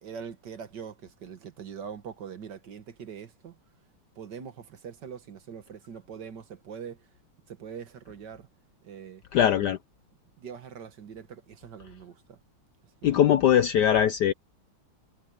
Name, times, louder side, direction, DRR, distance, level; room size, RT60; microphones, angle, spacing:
voice 1, 0.0-3.6 4.2-7.0 7.5-8.5 8.8-9.2 10.4-12.4 13.0-13.2, right 7 dB, 55° right, 2.0 m, -42 dB
voice 2, 9.3-9.8 13.0-14.3, left 10 dB, 65° left, 1.1 m, -21 dB
omnidirectional pair, 2.3 m